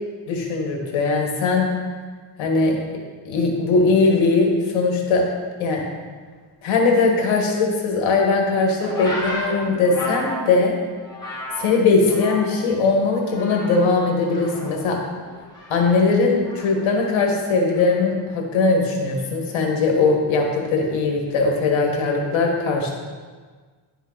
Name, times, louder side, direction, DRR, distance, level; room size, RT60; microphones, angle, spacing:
voice 1, 0.3-1.7 2.4-2.8 3.2-5.2 5.6-5.8 6.6-10.7 11.6-15.0 15.7-22.9, left 3 dB, 80° left, 1 dB, 1.5 m, -20 dB
sound 1, 8.8-12.7 13.0-13.9 14.2-16.9 17.7-18.1, left 1 dB, 10° left, 1.8 m, -33 dB
10.5 x 3.7 x 3.9 m, 1.5 s
cardioid pair, 135°, 46 cm